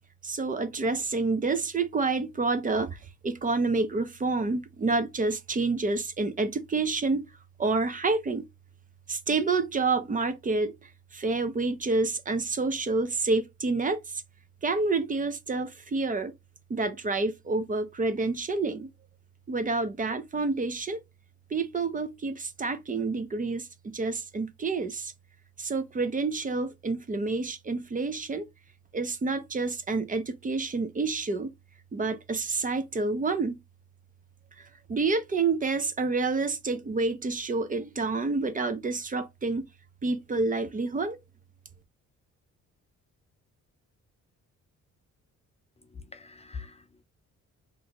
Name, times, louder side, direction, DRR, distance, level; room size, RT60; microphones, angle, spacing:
voice 1, 0.2-7.3 7.6-8.5 9.1-14.2 14.6-16.4 16.7-18.9 19.5-21.0 21.5-25.1 25.6-28.4 28.9-31.5 31.9-33.6 34.6-39.7 40.0-41.2, right 3 dB, 25° right, 0.5 m, -28 dB
voice 2, 45.9-47.0, left 5 dB, 20° left, 0.4 m, -43 dB
2.9 x 2.5 x 4.2 m
cardioid pair, 105°, 30 cm